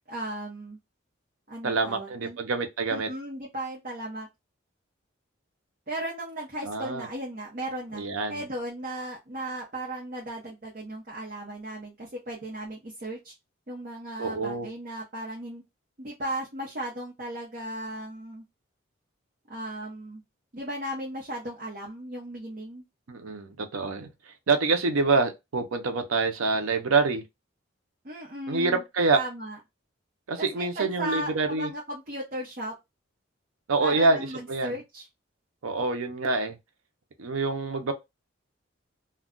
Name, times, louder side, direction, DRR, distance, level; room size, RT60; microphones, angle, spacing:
voice 1, 0.1-0.8 1.5-2.4 2.9-4.3 5.9-8.0 8.3-13.3 13.7-15.6 16.0-18.4 19.5-20.2 20.5-22.8 28.0-28.8 29.1-29.6 30.4-32.7 33.8-35.1, right 1 dB, 45° right, 0.8 m, -36 dB
voice 2, 1.6-3.1 6.6-7.1 7.9-8.4 14.2-14.7 23.1-27.2 28.5-29.2 30.3-31.7 33.7-34.8 35.6-36.6 37.2-37.9, right 3 dB, 90° right, 0.6 m, -26 dB
2.3 x 2.2 x 3.6 m
head